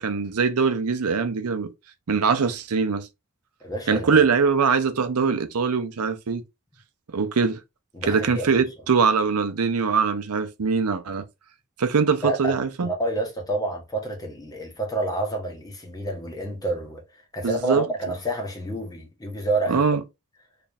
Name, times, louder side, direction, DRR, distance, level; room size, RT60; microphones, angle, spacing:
voice 1, 0.0-1.7 2.1-3.1 3.9-6.4 7.1-7.6 8.1-11.3 11.8-12.9 17.4-17.8 19.7-20.0, right 5 dB, 80° right, 0.6 m, -22 dB
voice 2, 3.6-4.3 7.9-8.6 12.2-12.5 12.8-19.8, right 2 dB, 15° left, 1.1 m, -29 dB
4.0 x 3.2 x 2.4 m
head